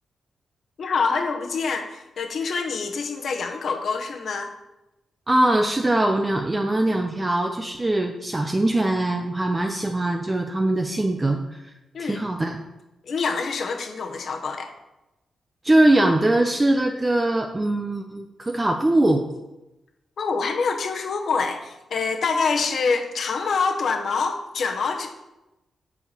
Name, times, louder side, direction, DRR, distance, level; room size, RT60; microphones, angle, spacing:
voice 1, 0.8-4.5 11.9-12.2 13.1-14.7 20.2-25.1, left 4 dB, 60° left, 4 dB, 1.3 m, -26 dB
voice 2, 5.3-11.4 12.0-12.6 15.6-19.2, right 1 dB, 20° right, 3 dB, 0.7 m, -21 dB
8.3 x 4.7 x 6.9 m, 0.96 s
cardioid pair, 115°, 0 cm